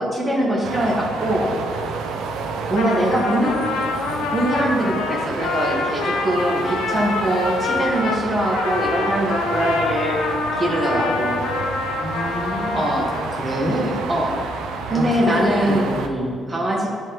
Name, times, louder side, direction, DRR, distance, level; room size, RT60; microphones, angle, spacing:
voice 1, 0.0-1.7 2.6-3.7 4.3-10.2 10.6-11.4 12.7-13.1 14.1-14.4 14.9-15.9 16.5-16.9, right 1 dB, 25° right, -4 dB, 1.3 m, -22 dB
Busy highway, 0.6-16.1, right 4 dB, 90° right, 0.4 m, -30 dB
Trumpet, 2.6-13.4, left 4 dB, 85° left, 0.5 m, -26 dB
voice 2, 12.0-12.8 13.1-14.0 14.9-16.3, equal, 10° left, -4 dB, 1.2 m, -26 dB
9.8 x 3.5 x 2.9 m, 2.2 s
cardioid pair, 90°, 0 cm